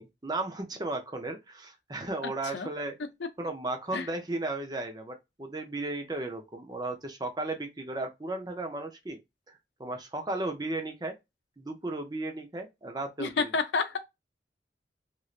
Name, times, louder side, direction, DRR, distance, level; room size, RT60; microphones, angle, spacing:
voice 1, 0.0-3.0 3.4-9.2 9.5-11.1 11.6-13.5, right 2 dB, 25° right, 0.6 m, -35 dB
voice 2, 2.2-2.7 3.9-4.1 13.2-14.0, left 4 dB, 85° left, 0.6 m, -30 dB
3.1 x 2.6 x 2.4 m
head